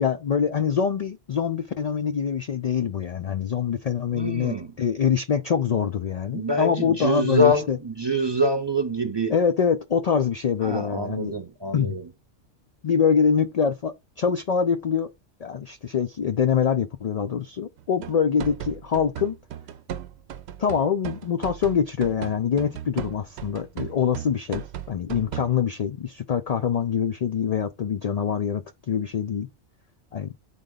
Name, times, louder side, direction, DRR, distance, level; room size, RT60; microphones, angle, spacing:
voice 1, 0.0-7.8 9.3-11.4 11.7-12.0 12.8-15.1 15.4-19.4 20.6-29.5 30.1-30.3, left 7 dB, 70° left, 0.3 m, -24 dB
voice 2, 4.1-4.7 6.3-9.3 10.6-12.1, equal, 30° right, 0.6 m, -25 dB
sound 1, 17.8-25.6, right 10 dB, 70° right, 0.8 m, -36 dB
8.7 x 3.8 x 3.9 m
omnidirectional pair, 1.2 m